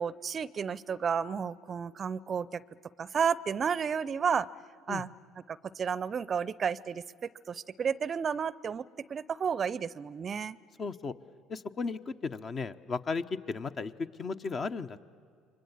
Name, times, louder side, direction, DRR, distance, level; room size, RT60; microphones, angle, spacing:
voice 1, 0.0-2.6 3.0-4.5 4.9-5.1 5.5-10.6, right 6 dB, 40° right, 20 dB, 0.6 m, -32 dB
voice 2, 10.8-11.1 11.5-15.0, left 4 dB, 40° left, 9 dB, 0.9 m, -35 dB
29.5 x 24.0 x 7.3 m, 2.2 s
hypercardioid pair, 60°, 0 cm